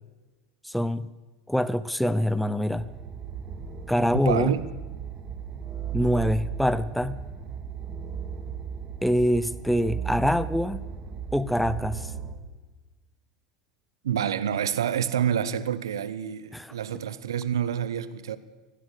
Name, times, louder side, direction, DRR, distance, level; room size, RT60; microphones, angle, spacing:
voice 1, 0.6-1.1 1.5-2.9 3.9-4.6 5.9-7.2 9.0-10.8 11.3-12.1 16.5-16.7, equal, ahead, 0.7 m, -25 dB
sound 1, 2.7-12.3, right 8 dB, 30° right, 2.4 m, -36 dB
voice 2, 4.1-4.6 14.0-18.4, right 9 dB, 85° right, 0.9 m, -28 dB
15.5 x 12.5 x 6.8 m
hypercardioid pair, 90°, 2 cm